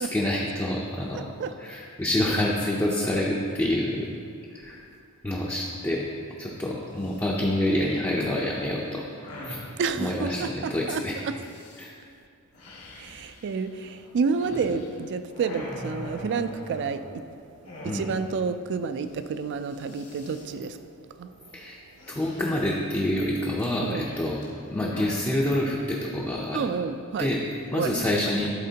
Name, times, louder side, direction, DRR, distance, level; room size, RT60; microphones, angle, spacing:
voice 1, 0.0-1.3 1.6-4.2 4.5-4.8 5.2-6.1 6.4-9.1 9.4-9.6 10.0-11.2 11.8-11.9 17.8-18.1 21.5-21.8 22.1-24.4 24.7-26.6 27.2-28.5, left 1 dB, 10° left, -4 dB, 0.5 m, -27 dB
voice 2, 1.1-1.5 9.8-11.4 12.9-20.9 21.2-21.3 23.8-24.1 26.5-27.3 27.7-28.4, right 5 dB, 50° right, 11 dB, 0.3 m, -30 dB
sound 1, 6.9-7.2 7.6-9.7 11.2-11.9 12.5-15.0 15.3-17.2 17.6-18.4 18.7-18.8 19.0-19.3 19.6-20.5 22.0-22.9 23.6-25.3, left 1 dB, 75° left, 1.7 m, -43 dB
11.5 x 4.2 x 2.8 m, 2.4 s
head